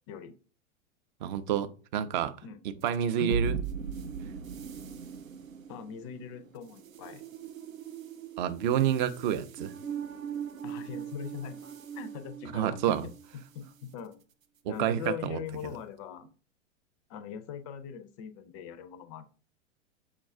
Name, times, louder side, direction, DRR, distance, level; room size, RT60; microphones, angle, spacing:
voice 1, 1.2-2.3 2.6-3.6 8.4-9.7 12.5-13.1 14.6-15.4, right 9 dB, 40° right, 0.4 m, -29 dB
sound 1, 2.8-13.3, right 6 dB, 90° right, 0.5 m, -39 dB
voice 2, 5.7-7.2 10.6-14.2 14.7-16.3 17.1-19.3, left 8 dB, 25° left, 0.4 m, -41 dB
6.4 x 2.3 x 3.5 m
figure-of-eight pair, 95°, 39 cm